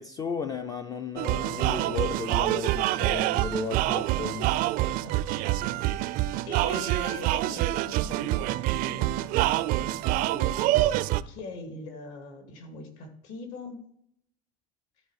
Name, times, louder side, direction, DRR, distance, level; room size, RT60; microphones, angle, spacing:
voice 1, 0.0-4.5, left 5 dB, 20° left, 0.3 m, -34 dB
sound 1, 1.2-11.2, right 15 dB, 50° right, 0.4 m, -26 dB
voice 2, 5.0-5.7 6.2-10.7 11.3-13.8, left 3 dB, 70° left, 2.4 m, -42 dB
12.5 x 4.6 x 4.7 m
cardioid pair, 155°, 19 cm